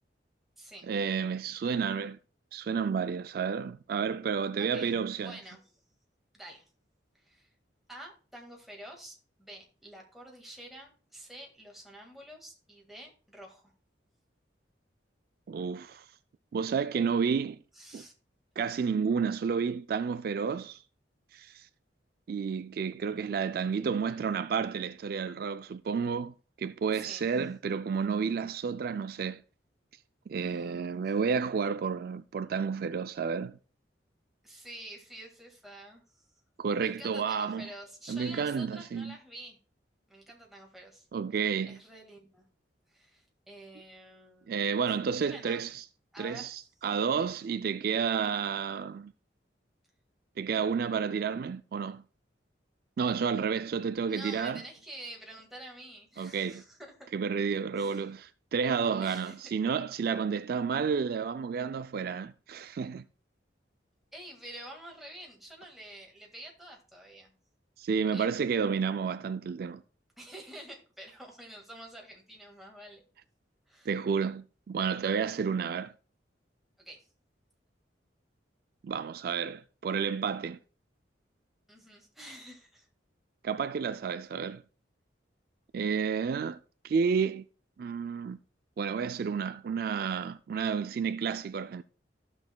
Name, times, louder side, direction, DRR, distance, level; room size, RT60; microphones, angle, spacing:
voice 1, 0.9-2.2 2.5-5.4 15.5-16.1 16.5-17.6 17.9-18.0 18.6-20.8 21.3-21.7 22.3-29.4 30.3-33.6 36.6-37.7 38.1-39.1 41.1-41.8 44.5-45.8 46.2-49.1 50.4-52.0 53.0-54.6 56.2-56.6 57.1-63.0 67.8-69.8 73.9-75.9 78.8-80.6 83.4-84.6 85.7-86.6 86.8-87.4 87.8-88.4 88.8-91.8, right 6 dB, 55° right, 0.3 m, -31 dB
voice 2, 4.6-5.0 5.2-5.7 6.3-6.6 7.1-7.5 7.9-13.7 17.7-18.1 26.9-27.3 30.4-31.0 34.4-36.3 36.8-39.6 40.1-41.1 41.7-42.5 42.9-44.8 45.3-45.6 46.1-46.5 54.1-57.1 57.7-58.1 59.0-59.4 64.1-67.3 68.1-68.3 70.2-73.0 73.7-73.9 76.8-77.1 81.7-82.9, right 1 dB, ahead, 1.8 m, -48 dB
14.5 x 6.2 x 2.3 m
head